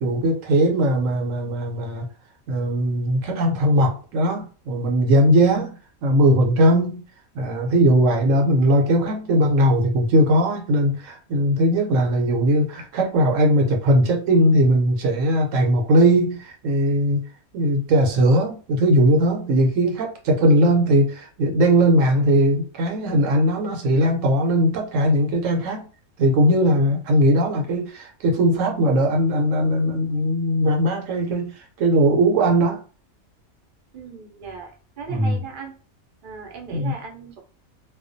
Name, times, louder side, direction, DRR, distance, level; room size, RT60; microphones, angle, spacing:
voice 1, 0.0-2.0 2.5-5.7 6.0-7.0 7.3-17.2 17.5-25.9 26.2-32.8 35.1-35.4 36.7-36.9, equal, 70° right, 2 dB, 1.0 m, -19 dB
voice 2, 33.9-35.7 36.2-37.4, right 5 dB, 50° right, 2 dB, 0.6 m, -37 dB
2.4 x 2.2 x 2.5 m, 0.37 s
omnidirectional pair, 1.5 m